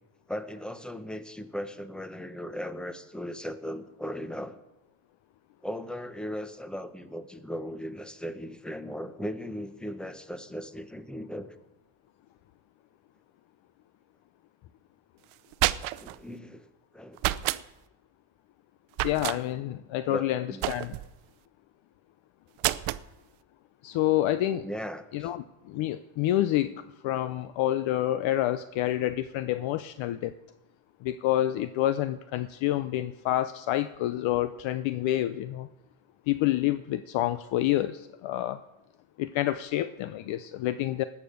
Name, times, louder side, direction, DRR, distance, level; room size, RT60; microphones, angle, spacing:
voice 1, 0.3-4.6 5.6-11.6 15.9-17.2 20.0-20.7 24.6-25.3, equal, ahead, 11 dB, 0.8 m, -37 dB
sound 1, 15.3-16.2 17.2-17.6 18.9-19.4 20.6-21.1 22.6-23.1, right 16 dB, 80° right, 0.7 m, -29 dB
voice 2, 19.0-21.0 23.8-24.7 25.1-26.7 27.0-30.3 31.0-35.7 36.3-38.6 39.2-41.0, left 14 dB, 70° left, 12 dB, 0.7 m, -28 dB
18.5 x 7.4 x 6.4 m, 0.97 s
cardioid pair, 125°, 49 cm